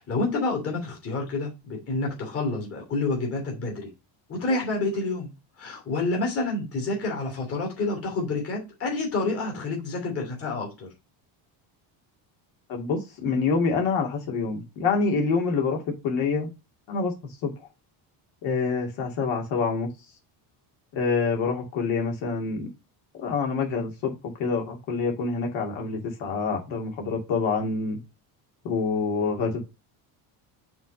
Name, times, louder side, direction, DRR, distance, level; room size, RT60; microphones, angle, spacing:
voice 1, 0.0-3.9 4.3-5.3 5.6-10.9, left 3 dB, 30° left, 2.9 m, -28 dB
voice 2, 12.7-16.5 16.9-17.1 17.4-17.5 18.4-19.9 20.9-22.7 23.1-24.1 24.4-28.0 28.6-29.6, left 4 dB, 70° left, 2.7 m, -26 dB
6.2 x 4.0 x 5.2 m
cardioid pair, 165°, 48 cm